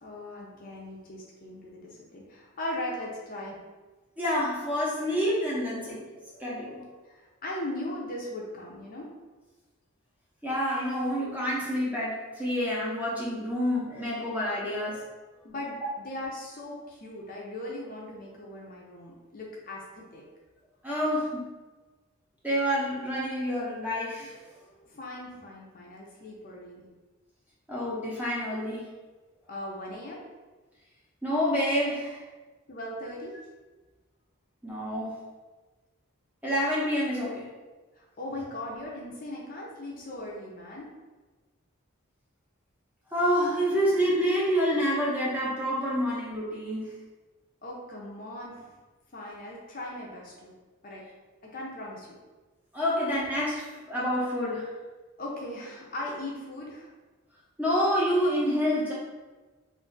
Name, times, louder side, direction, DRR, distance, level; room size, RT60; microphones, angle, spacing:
voice 1, 0.0-3.6 7.0-9.1 15.4-20.2 24.9-26.9 29.5-30.2 32.7-33.4 38.0-40.9 47.6-48.7 49.1-50.5 50.8-51.0 51.5-52.2 55.2-56.9, left 1 dB, 40° left, -3 dB, 0.5 m, -39 dB
voice 2, 4.2-6.0 6.4-6.8 10.4-15.0 20.8-21.4 22.4-24.4 27.7-28.9 31.2-32.2 34.6-35.2 36.4-37.5 43.1-46.9 52.7-54.7 57.6-58.9, equal, 5° right, -7 dB, 0.6 m, -28 dB
2.5 x 2.4 x 3.8 m, 1.2 s
head